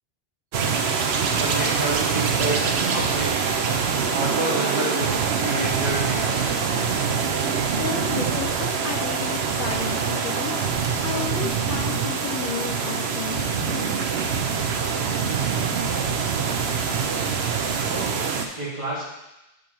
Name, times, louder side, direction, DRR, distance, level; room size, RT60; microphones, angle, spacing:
sound 1, 0.5-18.5, right 6 dB, 80° right, 0.9 m, -24 dB
voice 1, 1.4-2.6 2.9-3.6 4.1-6.6 17.9-19.1, right 2 dB, 30° right, -7 dB, 2.3 m, -29 dB
voice 2, 7.8-10.7 11.0-13.5, left 5 dB, 60° left, 2 dB, 0.7 m, -32 dB
7.7 x 6.8 x 3.0 m, 0.93 s
omnidirectional pair, 1.1 m